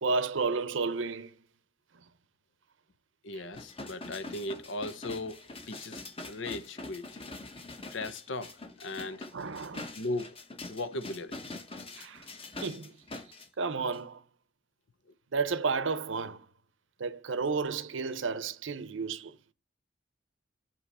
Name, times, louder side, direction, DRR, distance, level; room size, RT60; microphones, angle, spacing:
voice 1, 0.0-1.3 9.3-10.0 12.0-12.2 12.6-12.9 13.6-14.2 15.3-16.5 17.0-19.4, right 4 dB, 90° right, 0.7 m, -32 dB
voice 2, 3.2-7.1 7.9-9.3 10.0-10.4 10.7-11.4, left 2 dB, 80° left, 0.8 m, -37 dB
sound 1, 3.5-13.5 13.9-14.0, left 2 dB, 30° left, 1.1 m, -44 dB
8.5 x 3.0 x 5.4 m
head